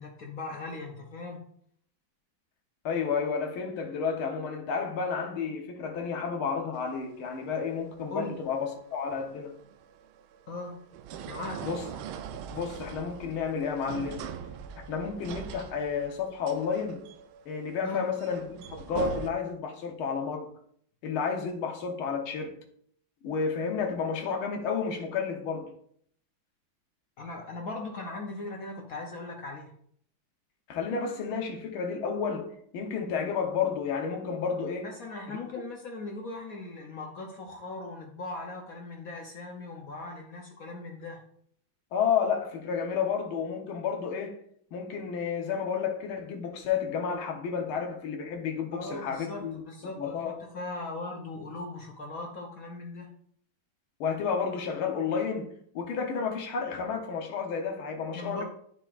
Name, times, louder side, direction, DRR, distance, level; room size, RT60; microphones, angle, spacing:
voice 1, 0.0-1.4 8.1-8.3 10.5-10.8 11.3-11.7 17.8-18.1 27.2-29.7 34.8-41.2 48.7-53.1 58.1-58.4, left 2 dB, 60° left, 1.0 m, -39 dB
voice 2, 2.9-9.5 11.6-11.8 12.5-14.3 14.9-17.0 17.5-20.5 21.0-22.6 23.2-25.7 30.7-34.9 35.3-35.4 41.9-44.4 44.7-49.6 50.0-50.3 54.0-58.4, left 6 dB, 85° left, 1.9 m, -31 dB
sound 1, 6.8-19.3, right 8 dB, 85° right, 1.4 m, -42 dB
10.0 x 5.8 x 2.4 m
omnidirectional pair, 2.2 m